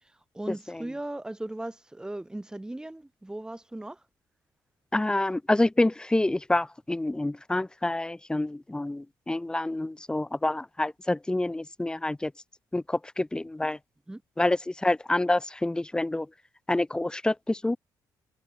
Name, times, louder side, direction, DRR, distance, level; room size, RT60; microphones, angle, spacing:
voice 1, 0.3-4.0 14.1-14.2, right 1 dB, 10° right, 3.1 m, -37 dB
voice 2, 4.9-12.3 12.7-13.8 14.4-16.3 16.7-17.8, left 2 dB, 10° left, 1.6 m, -27 dB
cardioid pair, 110°, 8 cm